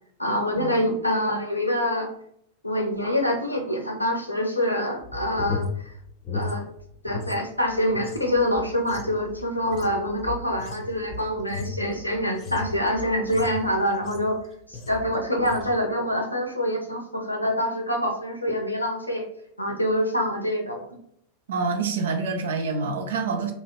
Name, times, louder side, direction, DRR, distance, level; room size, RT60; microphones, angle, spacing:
voice 1, 0.2-2.1 2.6-5.9 6.3-6.7 7.0-14.4 14.7-19.3 19.6-20.9, left 1 dB, 85° left, 0.6 m, -25 dB
sound 1, 5.0-7.4 7.7-14.4 14.7-15.1 15.4-15.7, left 3 dB, 30° left, 0.5 m, -35 dB
voice 2, 21.5-23.5, right 4 dB, 60° right, 0.4 m, -27 dB
2.9 x 2.4 x 2.9 m
figure-of-eight pair, 90°, 0 cm